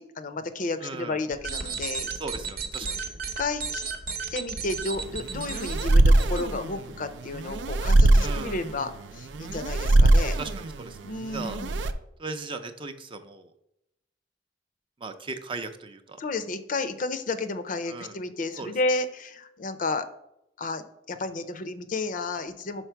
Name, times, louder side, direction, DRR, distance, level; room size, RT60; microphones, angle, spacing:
voice 1, 0.0-2.1 3.4-3.8 4.3-10.4 11.0-11.8 16.2-20.1 20.6-22.9, left 3 dB, 50° left, 9 dB, 0.5 m, -32 dB
voice 2, 0.8-1.2 2.2-3.0 8.2-8.6 10.4-11.6 12.2-13.5 15.0-16.2 17.9-18.2 18.6-18.7, right 3 dB, 30° right, 7 dB, 0.5 m, -37 dB
sound 1, 1.3-6.4, right 5 dB, 55° right, 0.8 m, -34 dB
sound 2, 5.0-11.9, right 2 dB, 80° right, 0.4 m, -22 dB
5.8 x 4.3 x 4.5 m, 0.81 s
head